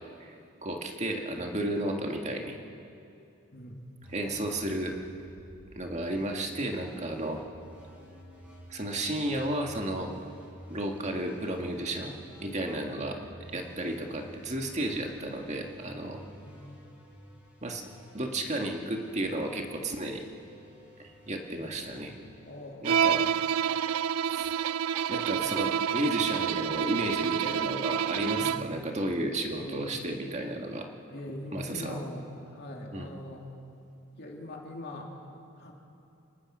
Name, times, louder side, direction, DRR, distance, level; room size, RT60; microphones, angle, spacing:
voice 1, 0.6-2.5 4.1-5.0 5.7-7.4 8.7-10.1 10.7-12.1 12.4-13.2 13.5-16.3 17.6-17.8 18.1-20.2 21.0-22.1 22.8-23.2 24.3-24.5 25.1-30.9 31.5-32.0 32.9-33.1, right 1 dB, 30° right, 2 dB, 1.8 m, -33 dB
voice 2, 3.5-3.8 13.2-13.4 16.4-16.8 22.4-23.0 25.5-25.6 28.4-28.6 29.5-29.8 31.1-33.4 34.1-35.1 35.6-35.7, left 1 dB, 50° left, 0 dB, 2.9 m, -42 dB
sound 1, 4.0-23.6, equal, 5° right, 5.6 m, -52 dB
Bowed string instrument, 22.8-28.8, right 8 dB, 90° right, 0.4 m, -28 dB
29.0 x 19.0 x 6.2 m, 2.7 s
head